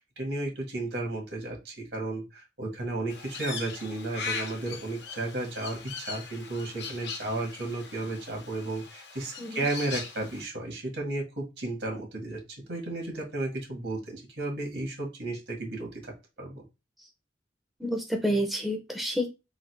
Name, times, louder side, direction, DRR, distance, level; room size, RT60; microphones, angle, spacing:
voice 1, 0.0-12.4 12.7-16.1 16.4-16.6, right 2 dB, 80° right, 0 dB, 1.8 m, -33 dB
Crow, 3.1-10.4, left 5 dB, 75° left, 0.9 m, -40 dB
voice 2, 17.8-19.3, equal, ahead, 2 dB, 0.7 m, -29 dB
3.9 x 2.4 x 4.6 m, 0.26 s
head